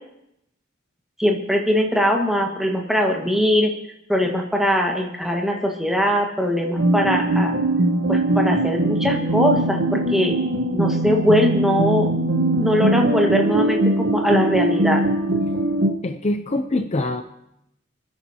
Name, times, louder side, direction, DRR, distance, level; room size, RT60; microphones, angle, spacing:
voice 1, 1.2-3.7 4.1-7.5 8.1-10.3 10.7-12.1 12.6-15.0, equal, ahead, 0 dB, 1.6 m, -21 dB
sound 1, 6.8-15.9, right 1 dB, 80° right, 1.2 m, -21 dB
voice 2, 16.0-17.2, left 2 dB, 35° left, 7 dB, 0.6 m, -24 dB
29.5 x 10.0 x 2.9 m, 0.82 s
head